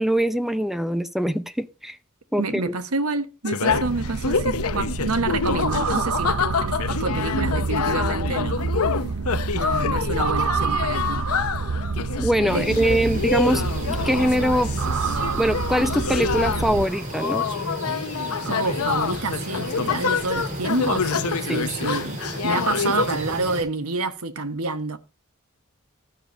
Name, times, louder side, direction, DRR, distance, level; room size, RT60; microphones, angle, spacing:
voice 1, 0.0-2.0 2.3-2.7 12.2-14.7 15.4-17.5 21.5-21.6, equal, ahead, 0.6 m, -23 dB
voice 2, 2.4-8.7 9.5-11.2 12.5-12.7 18.4-25.0, right 3 dB, 90° right, 1.3 m, -28 dB
sound 1, 3.4-23.2, left 5 dB, 90° left, 0.8 m, -27 dB
sound 2, 3.7-16.8, right 5 dB, 75° right, 0.6 m, -28 dB
sound 3, 12.4-23.6, right 1 dB, 40° right, 4.4 m, -34 dB
12.5 x 6.8 x 4.5 m
head